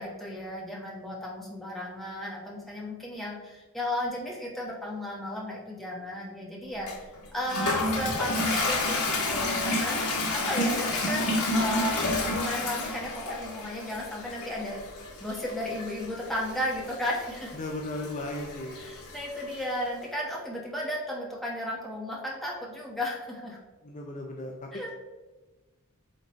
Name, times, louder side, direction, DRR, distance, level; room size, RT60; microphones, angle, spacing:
voice 1, 0.0-6.9 7.3-10.0 10.3-11.9 12.3-14.8 15.2-17.5 18.8-23.6 24.7-24.9, left 1 dB, ahead, -4 dB, 1.3 m, -34 dB
Toilet flush, 6.9-19.6, left 2 dB, 85° left, 1.4 m, -30 dB
voice 2, 17.5-18.8 23.8-24.9, left 1 dB, 35° left, 1 dB, 0.5 m, -36 dB
8.3 x 3.9 x 3.1 m, 1.2 s
head